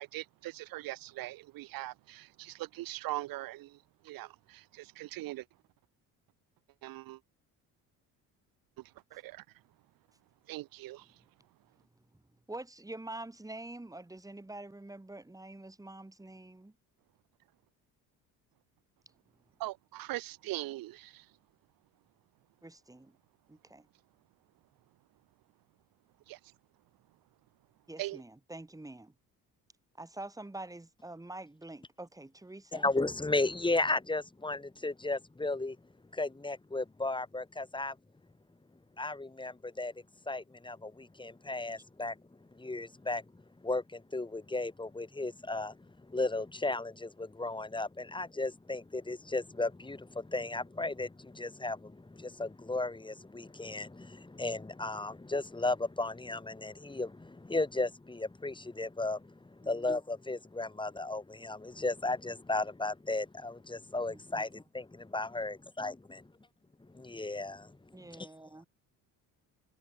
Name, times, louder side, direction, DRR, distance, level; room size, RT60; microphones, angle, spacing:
voice 1, 0.0-5.5 6.8-7.2 8.8-9.4 10.5-11.2 19.6-21.3 26.3-26.4 28.0-28.2, right 17 dB, 85° right, 3.9 m, -41 dB
voice 2, 12.5-16.7 22.6-23.1 23.5-23.9 27.9-29.1 30.0-32.8 59.6-59.9 64.1-64.5 67.9-68.7, right 2 dB, 10° right, 6.2 m, -46 dB
voice 3, 32.7-35.8 36.1-38.0 39.0-39.9 40.3-42.2 42.5-64.8 65.1-66.3 66.8-68.3, left 2 dB, 15° left, 4.9 m, -35 dB
cardioid pair, 100°, 34 cm